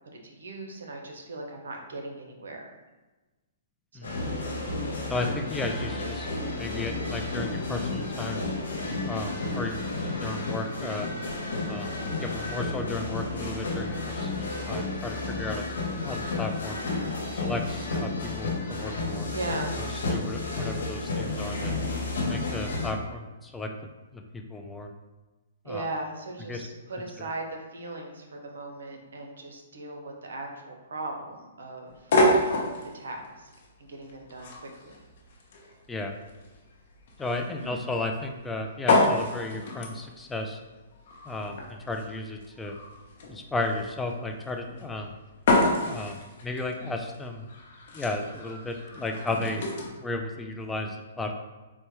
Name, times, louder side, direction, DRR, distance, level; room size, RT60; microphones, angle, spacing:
voice 1, 0.2-2.6 4.0-4.2 19.3-19.8 25.6-32.1 32.9-33.5 33.8-35.0 37.6-37.8, right 2 dB, 80° right, 2 dB, 0.7 m, -38 dB
sound 1, 4.0-22.9, left 3 dB, 85° left, 0.9 m, -32 dB
voice 2, 5.1-8.4 9.0-11.1 11.6-15.6 16.0-16.8 17.3-19.3 20.1-21.7 22.3-23.7 24.1-24.9 25.7-25.9 26.5-26.6 27.2-27.3 35.9-36.1 37.2-40.6 41.2-42.7 43.3-45.1 45.8-47.5 47.9-49.6 50.0-51.3, left 2 dB, 10° left, 3 dB, 0.3 m, -34 dB
sound 2, 31.9-49.9, left 1 dB, 60° left, 0.8 m, -29 dB
4.2 x 2.2 x 3.0 m, 1.2 s
hypercardioid pair, 140°, 0 cm